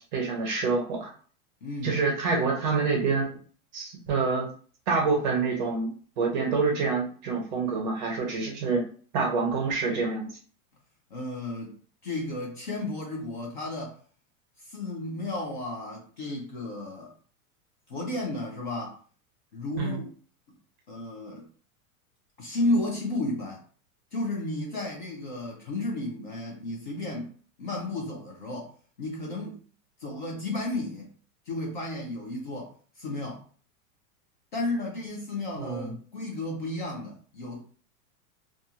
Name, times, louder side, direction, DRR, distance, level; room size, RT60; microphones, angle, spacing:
voice 1, 0.1-1.1 1.8-3.4 3.7-4.5 4.9-5.9 6.2-8.8 9.1-10.3 19.8-20.0 35.6-36.0, right 4 dB, 35° right, 1 dB, 0.6 m, -27 dB
voice 2, 1.6-2.0 11.1-11.8 12.0-14.0 14.6-17.1 17.9-19.0 19.5-20.1 20.9-21.4 22.4-23.6 24.1-27.3 27.6-28.7 29.0-29.6 30.0-31.1 31.5-33.4 34.5-37.6, left 2 dB, 35° left, 0 dB, 0.4 m, -33 dB
2.4 x 2.4 x 2.7 m, 0.42 s
supercardioid pair, 175°, 43 cm